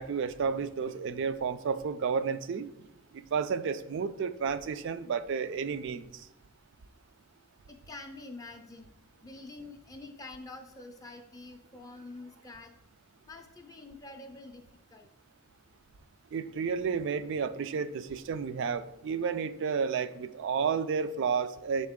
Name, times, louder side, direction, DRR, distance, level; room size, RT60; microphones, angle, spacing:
voice 1, 0.0-2.7 3.1-6.3 16.3-21.9, right 6 dB, 55° right, 12 dB, 0.3 m, -31 dB
voice 2, 7.7-8.9 9.2-12.8 13.3-14.6 14.9-15.1, left 2 dB, 15° left, 4 dB, 0.4 m, -46 dB
6.5 x 4.2 x 3.6 m, 0.99 s
head